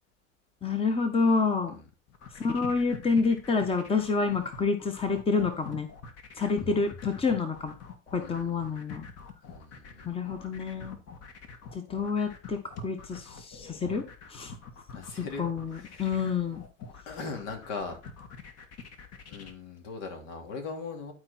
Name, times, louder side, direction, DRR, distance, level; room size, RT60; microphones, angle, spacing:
voice 1, 0.6-1.7 2.4-5.9 6.4-7.7 8.1-9.1 10.0-11.0 11.7-14.5 15.4-16.6, left 4 dB, 15° left, 7 dB, 1.2 m, -28 dB
sound 1, 2.1-19.5, left 5 dB, 40° left, 1.9 m, -45 dB
voice 2, 8.2-8.8 9.4-10.3 14.9-15.4 15.7-16.3 17.0-18.0 19.3-21.1, left 4 dB, 65° left, 3 dB, 3.1 m, -40 dB
11.5 x 4.7 x 4.3 m, 0.33 s
hypercardioid pair, 105°, 38 cm